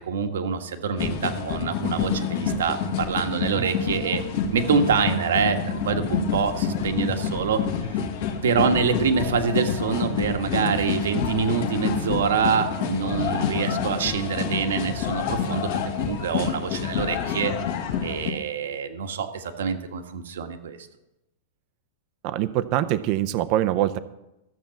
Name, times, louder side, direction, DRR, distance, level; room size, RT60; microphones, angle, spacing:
voice 1, 0.1-4.2 4.5-5.6 5.8-7.6 8.4-15.7 16.0-17.5 18.0-20.8, right 6 dB, 85° right, 6 dB, 1.5 m, -25 dB
sound 1, 1.0-18.3, left 6 dB, 45° left, 1.5 m, -28 dB
voice 2, 22.2-24.0, right 13 dB, 30° right, 12 dB, 0.5 m, -24 dB
14.5 x 7.6 x 7.1 m, 0.93 s
supercardioid pair, 175°, 0 cm